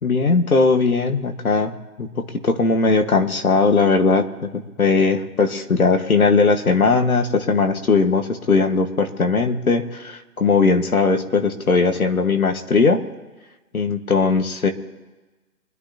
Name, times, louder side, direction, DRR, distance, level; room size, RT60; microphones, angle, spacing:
voice 1, 0.0-1.7 2.0-13.0 13.7-14.7, left 4 dB, 65° left, 6 dB, 1.9 m, -19 dB
24.5 x 11.5 x 3.0 m, 1.2 s
figure-of-eight pair, 145°, 46 cm